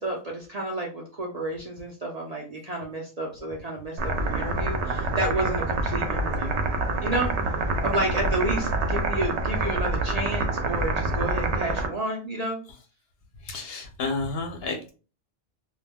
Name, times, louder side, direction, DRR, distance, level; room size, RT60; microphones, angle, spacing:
voice 1, 0.0-6.5 7.0-7.3 7.8-12.6, right 1 dB, 50° right, -1 dB, 0.5 m, -31 dB
sound 1, 4.0-11.9, right 2 dB, 75° right, 0.8 m, -26 dB
voice 2, 13.4-14.9, left 3 dB, 65° left, 3 dB, 0.8 m, -31 dB
2.3 x 2.0 x 3.4 m, 0.35 s
omnidirectional pair, 1.2 m